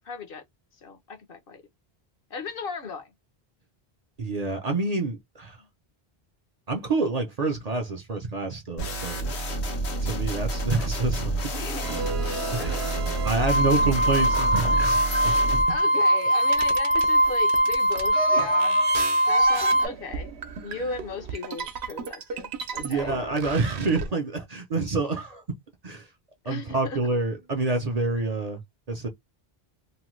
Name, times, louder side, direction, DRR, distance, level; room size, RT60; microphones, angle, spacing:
voice 1, 0.0-0.4 0.7-1.6 2.3-3.1 5.6-5.7 11.5-12.1 12.6-13.2 15.7-18.9 19.3-20.3 20.6-23.2 26.4-27.0, left 4 dB, 60° left, 0.9 m, -37 dB
voice 2, 4.2-5.6 6.7-9.3 10.0-11.4 12.5-12.7 13.2-15.0 15.2-15.3 18.4-18.5 22.8-25.4 25.8-26.1 26.5-28.6 28.9-29.1, right 3 dB, 45° right, 0.6 m, -27 dB
sound 1, 8.8-15.6, right 1 dB, 90° left, 1.2 m, -29 dB
sound 2, 11.8-15.3 15.7-24.1, right 5 dB, 80° right, 0.9 m, -34 dB
sound 3, 13.5-19.9, equal, 35° left, 0.5 m, -22 dB
3.1 x 2.1 x 3.0 m
omnidirectional pair, 1.1 m